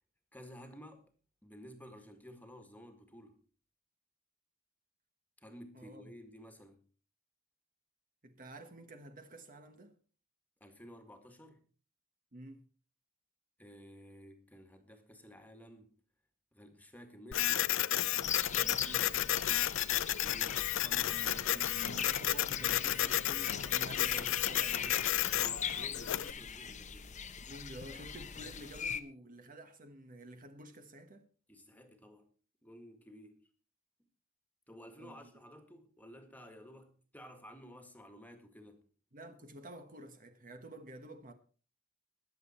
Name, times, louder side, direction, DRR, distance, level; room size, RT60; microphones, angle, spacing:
voice 1, 0.3-1.1 1.4-3.4 5.4-6.9 10.6-11.6 13.6-15.9 16.5-17.7 20.2-20.6 25.3-27.2 31.5-32.3 32.6-33.4 34.7-38.8, equal, 10° left, 1.8 m, -53 dB
voice 2, 5.7-6.1 8.2-10.0 12.3-12.7 18.5-19.2 20.8-25.0 27.4-31.3 35.0-35.3 39.1-41.3, right 1 dB, 40° right, 1.3 m, -50 dB
Printer, 17.3-26.3, left 13 dB, 65° left, 0.5 m, -32 dB
sound 1, 18.2-29.0, left 7 dB, 35° left, 0.8 m, -41 dB
21.0 x 7.4 x 4.4 m
head